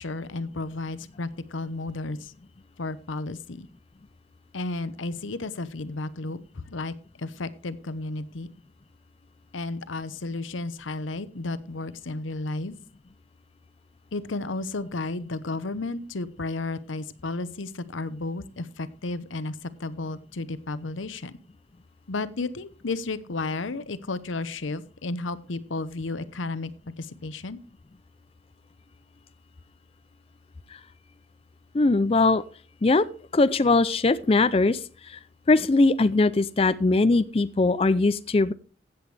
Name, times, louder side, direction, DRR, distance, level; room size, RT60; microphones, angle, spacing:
voice 1, 0.0-2.3 2.8-3.7 4.5-8.5 9.5-12.7 14.1-21.3 22.1-26.7 27.0-27.6, left 3 dB, 90° left, 15 dB, 0.8 m, -33 dB
voice 2, 31.7-32.4 32.8-33.1 33.3-35.2 35.5-38.5, left 3 dB, 30° left, 13 dB, 0.4 m, -21 dB
15.5 x 7.9 x 3.3 m, 0.38 s
head